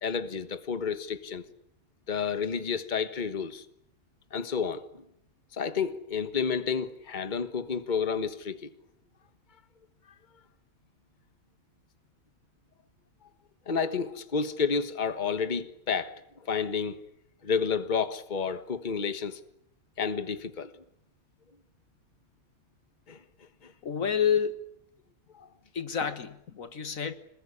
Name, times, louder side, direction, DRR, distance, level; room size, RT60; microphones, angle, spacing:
voice 1, 0.0-1.4 2.1-3.6 4.3-4.8 5.5-8.7 13.7-16.1 16.4-17.0 17.4-19.4 20.0-20.7 23.1-23.2 23.6-23.7 25.3-25.5, left 6 dB, 35° left, 1.5 m, -30 dB
voice 2, 23.8-24.6 25.7-27.2, left 7 dB, 70° left, 1.8 m, -29 dB
26.5 x 20.5 x 9.9 m
omnidirectional pair, 1.5 m